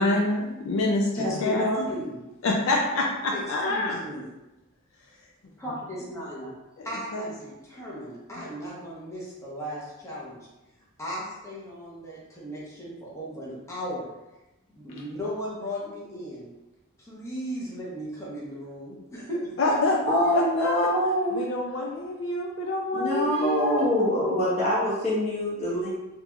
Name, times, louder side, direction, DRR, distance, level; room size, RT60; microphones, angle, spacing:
voice 1, 0.0-1.7 2.4-4.0 6.8-7.2 19.6-20.0 20.3-20.9 21.3-24.4, left 2 dB, 65° left, -1 dB, 0.4 m, -27 dB
voice 2, 1.2-2.2 3.3-3.4 3.7-4.2 5.6-6.5 6.8-10.4 11.0-14.1 14.7-16.5 17.0-19.4, equal, 15° left, -7 dB, 0.8 m, -35 dB
voice 3, 20.1-21.4 22.9-25.9, equal, 30° left, -7 dB, 1.1 m, -24 dB
3.7 x 2.9 x 2.4 m, 1.0 s
head